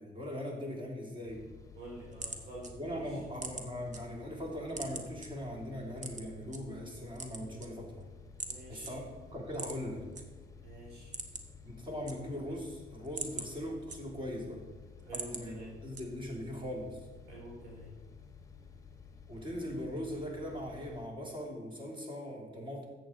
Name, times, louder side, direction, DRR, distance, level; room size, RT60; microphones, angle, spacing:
voice 1, 0.0-1.5 2.8-8.1 8.7-9.0 9.3-10.0 11.6-14.6 15.1-15.6 15.8-17.1 19.3-22.8, equal, 30° right, 0 dB, 3.3 m, -40 dB
sound 1, 1.3-21.1, left 6 dB, 20° left, 1.2 m, -53 dB
sound 2, 1.8-4.0 4.4-5.3 6.0-6.6 7.1-8.0 8.4-8.6 8.8-8.9 9.5-10.2 10.6-10.7 11.0-11.6 11.9-12.6 12.9-14.4 14.8-15.4 15.9-16.4, right 4 dB, 45° right, 1.4 m, -42 dB
voice 2, 1.8-3.2 8.4-9.0 10.6-11.2 15.0-15.8 17.3-17.9, right 1 dB, 75° right, -3 dB, 4.1 m, -48 dB
13.5 x 7.9 x 4.6 m, 1.3 s
cardioid pair, 110°, 17 cm